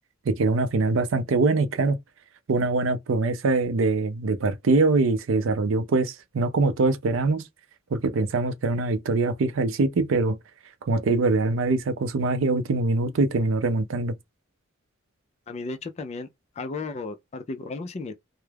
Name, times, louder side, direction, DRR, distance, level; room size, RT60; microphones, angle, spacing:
voice 1, 0.3-2.0 2.5-7.5 7.9-10.4 10.8-14.2, right 3 dB, 65° right, 0.4 m, -23 dB
voice 2, 15.5-16.3 16.6-18.1, left 3 dB, 30° left, 0.3 m, -34 dB
2.3 x 2.0 x 3.2 m
head